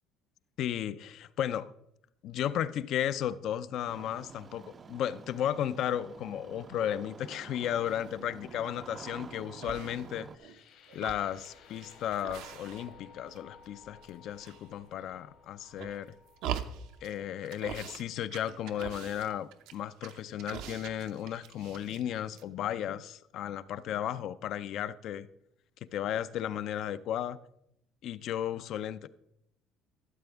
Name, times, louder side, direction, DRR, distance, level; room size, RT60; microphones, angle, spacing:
voice 1, 0.6-1.7 2.2-10.6 10.9-16.2 17.0-25.3 25.9-27.4 28.0-29.1, left 10 dB, 55° left, 0.4 m, -34 dB
Engine starting, 3.9-10.4, right 5 dB, 25° right, 0.4 m, -49 dB
sound 1, 7.8-8.3 8.8-9.4 9.6-10.6 10.9-13.1 13.3-14.1 14.4-15.1 15.6-17.1 17.4-18.0 18.3-22.1 22.3-22.4, right 9 dB, 75° right, 0.6 m, -43 dB
sound 2, 10.4-18.4, left 6 dB, 75° left, 2.2 m, -57 dB
12.5 x 7.7 x 3.5 m
cardioid pair, 145°, 0 cm